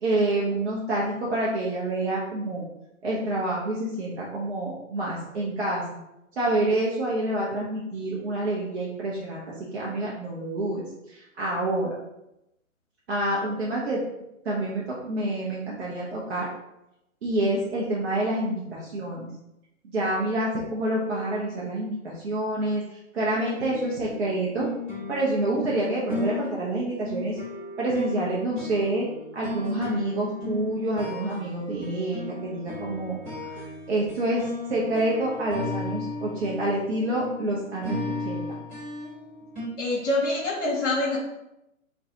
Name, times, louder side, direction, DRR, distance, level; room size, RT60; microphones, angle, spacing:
voice 1, 0.0-2.6 3.0-6.0 6.4-11.9 13.1-14.0 14.4-16.5 17.2-19.3 19.9-24.7 25.1-27.4 27.8-29.1 29.3-33.2 33.9-34.4 34.7-38.4, right 1 dB, 50° right, -5 dB, 0.6 m, -27 dB
sound 1, 23.7-39.7, left 2 dB, 15° right, 0.9 m, -36 dB
voice 2, 39.8-41.2, left 2 dB, 60° left, -3 dB, 0.8 m, -25 dB
2.4 x 2.3 x 2.7 m, 0.88 s
figure-of-eight pair, 125°, 41 cm